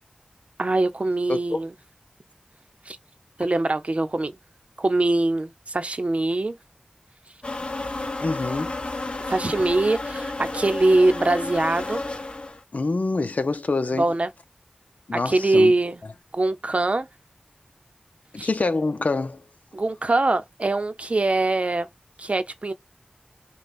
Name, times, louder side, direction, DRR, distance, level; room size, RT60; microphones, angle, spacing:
voice 1, 0.6-1.7 2.9-3.0 3.4-4.4 4.8-6.5 9.3-12.0 14.0-14.3 15.1-16.0 16.3-17.1 18.4-18.5 19.7-21.9 22.2-22.7, right 2 dB, 55° right, 0.7 m, -22 dB
voice 2, 1.3-1.6 8.2-8.8 12.7-14.1 15.1-15.7 18.3-19.4, left 3 dB, 75° left, 0.7 m, -26 dB
sound 1, 7.4-12.6, left 2 dB, 45° left, 1.0 m, -31 dB
5.5 x 2.3 x 4.0 m
wide cardioid pair, 55°, 3 cm